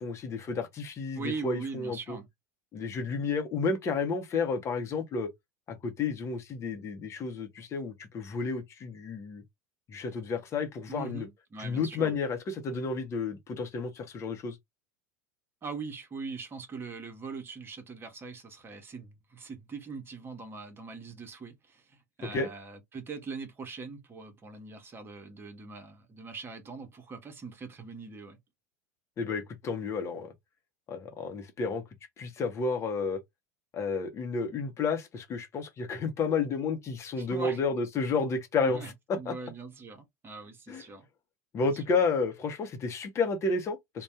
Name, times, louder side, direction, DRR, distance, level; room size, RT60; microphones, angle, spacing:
voice 1, 0.0-2.2 2.7-5.3 5.7-9.4 9.9-11.3 11.6-14.6 22.2-22.5 29.2-30.3 30.9-31.8 32.2-33.2 33.7-39.3 40.7-40.8 41.5-44.0, left 4 dB, 35° left, 0.9 m, -31 dB
voice 2, 1.1-2.3 10.9-12.1 15.6-28.4 37.2-37.6 38.6-41.1 41.6-42.0, right 4 dB, 25° right, 1.0 m, -41 dB
2.6 x 2.3 x 3.4 m
figure-of-eight pair, 80°, 9 cm